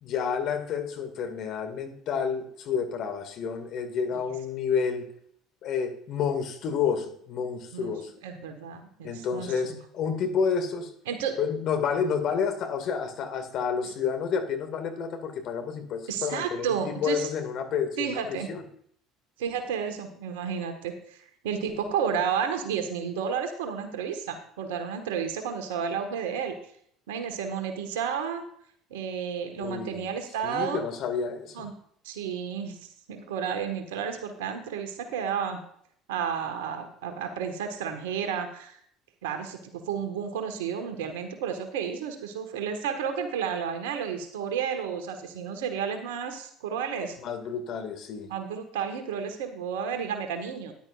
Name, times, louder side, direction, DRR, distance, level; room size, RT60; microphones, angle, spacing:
voice 1, 0.0-5.1 5.6-8.1 9.0-10.9 11.4-18.6 29.6-30.1 30.4-31.7 47.2-48.3, left 6 dB, 55° left, 6 dB, 2.1 m, -30 dB
voice 2, 8.2-9.8 11.1-11.4 13.8-13.9 16.1-17.3 18.0-18.5 19.4-26.6 27.1-28.4 28.9-30.8 31.5-31.7 32.0-35.6 36.1-38.8 39.2-47.2 48.3-50.7, right 7 dB, 75° right, 6 dB, 1.5 m, -32 dB
13.5 x 10.5 x 2.5 m, 0.64 s
hypercardioid pair, 65°, 0 cm